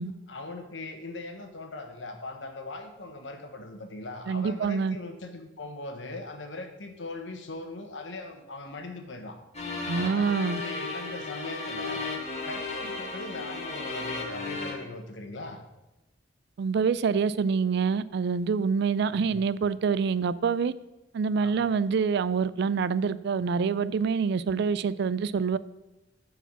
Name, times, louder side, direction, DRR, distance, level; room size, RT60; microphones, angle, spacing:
voice 1, 0.3-9.4 9.9-12.0 12.4-15.6 19.1-19.4 21.4-21.6, left 2 dB, 90° left, 5 dB, 1.2 m, -40 dB
voice 2, 4.3-5.0 9.9-10.6 16.6-20.7 21.1-25.6, right 5 dB, 65° right, 17 dB, 0.3 m, -26 dB
sound 1, 9.5-14.7, left 3 dB, 35° left, 1.6 m, -34 dB
9.0 x 4.8 x 6.0 m, 1.0 s
head